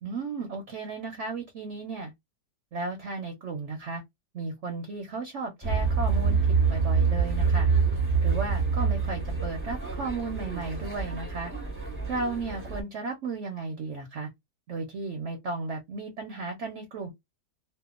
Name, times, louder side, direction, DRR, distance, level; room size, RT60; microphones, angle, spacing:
voice 1, 0.0-2.1 2.7-4.0 4.3-7.7 8.2-11.5 12.1-14.3 14.7-17.1, right 3 dB, 55° right, 0.9 m, -34 dB
sound 1, 5.6-12.8, right 5 dB, 10° right, 0.7 m, -26 dB
2.8 x 2.2 x 2.3 m
omnidirectional pair, 1.8 m